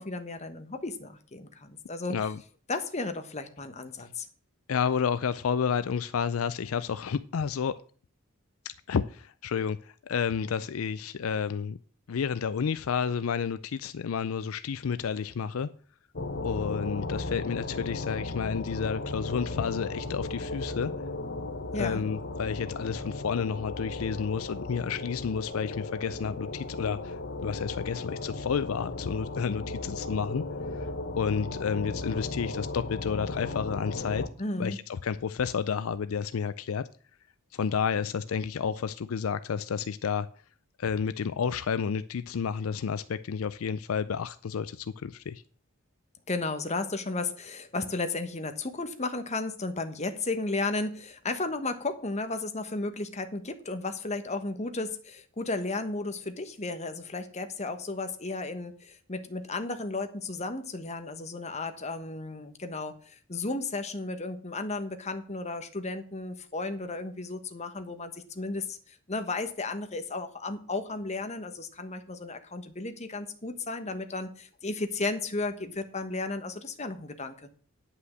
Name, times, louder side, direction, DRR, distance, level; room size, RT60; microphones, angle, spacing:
voice 1, 0.0-2.2 2.7-4.3 21.7-22.0 34.4-34.8 46.3-77.5, left 3 dB, 30° left, 1.2 m, -34 dB
voice 2, 2.1-2.4 4.7-7.7 8.9-11.8 12.1-15.7 16.4-20.9 21.8-30.4 30.7-30.9 31.2-34.2 34.6-36.8 37.5-40.3 40.8-45.4, left 6 dB, 70° left, 0.4 m, -30 dB
sound 1, 16.1-34.3, left 2 dB, 50° left, 1.1 m, -36 dB
9.8 x 5.7 x 7.9 m
head